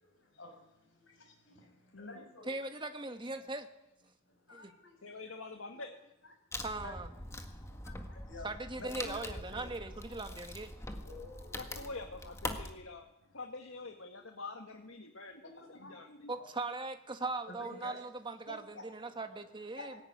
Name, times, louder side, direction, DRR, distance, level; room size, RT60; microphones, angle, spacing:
voice 1, 0.0-2.5 4.3-4.9 6.8-6.9 7.8-8.5 8.8-9.2 9.5-9.7 11.0-11.8 15.6-16.0 16.3-16.5 17.5-18.0 18.5-18.8 19.8-20.0, left 2 dB, 65° left, 7.0 m, -50 dB
voice 2, 1.9-2.3 5.0-6.0 8.9-9.5 11.6-13.1 13.3-16.3, left 3 dB, 85° left, 1.7 m, -46 dB
voice 3, 2.4-3.7 4.5-4.7 6.6-7.1 8.4-10.7 16.3-20.0, right 2 dB, 25° right, 1.5 m, -40 dB
Wood, 6.5-12.7, left 1 dB, 15° left, 1.7 m, -43 dB
19.5 x 17.0 x 9.6 m
head